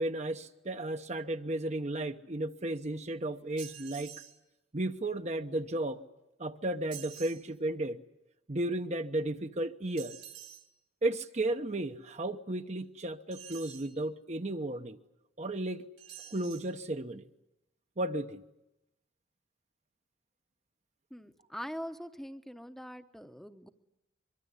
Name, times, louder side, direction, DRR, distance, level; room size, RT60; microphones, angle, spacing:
voice 1, 0.0-4.1 4.7-6.0 6.4-8.0 8.5-10.1 11.0-15.0 15.4-15.9 16.3-17.2 18.0-18.4, right 1 dB, 35° right, 0.9 m, -34 dB
sound 1, 3.6-4.4 6.9-7.4 10.0-10.7 13.3-13.9 16.0-16.7, right 11 dB, 65° right, 2.6 m, -48 dB
voice 2, 21.1-23.7, equal, ahead, 0.9 m, -43 dB
24.0 x 23.5 x 9.6 m
head